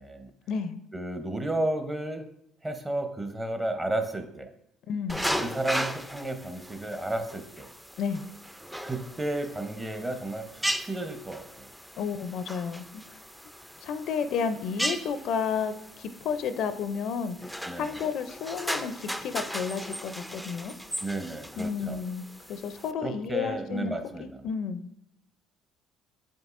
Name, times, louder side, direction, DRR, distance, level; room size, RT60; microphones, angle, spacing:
voice 1, 0.9-2.2 2.6-4.5 5.4-7.7 8.8-11.7 17.6-18.0 21.0-22.0 23.0-24.5, right 1 dB, 20° right, 7 dB, 0.8 m, -33 dB
voice 2, 4.9-5.2 8.0-8.2 12.0-13.0 13.8-15.7 16.0-20.7 21.6-22.2 22.5-23.9 24.2-24.8, left 6 dB, 65° left, 11 dB, 0.4 m, -31 dB
sound 1, 5.1-22.9, equal, ahead, 0.4 m, -37 dB
7.6 x 5.3 x 2.5 m, 0.80 s
supercardioid pair, 90°, 0 cm